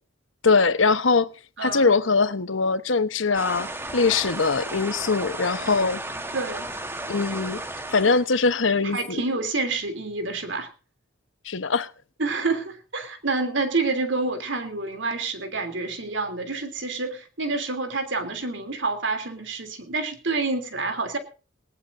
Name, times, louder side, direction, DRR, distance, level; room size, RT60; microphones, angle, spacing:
voice 1, 0.4-1.3 1.6-6.0 7.1-7.6 7.9-9.2 11.4-11.9, left 4 dB, 75° left, 1.1 m, -22 dB
voice 2, 1.6-1.9 6.3-6.7 8.8-10.7 12.2-21.2, right 3 dB, 70° right, 3.2 m, -28 dB
sound 1, 3.3-8.3, right 1 dB, 10° right, 1.3 m, -34 dB
19.5 x 18.0 x 2.7 m
head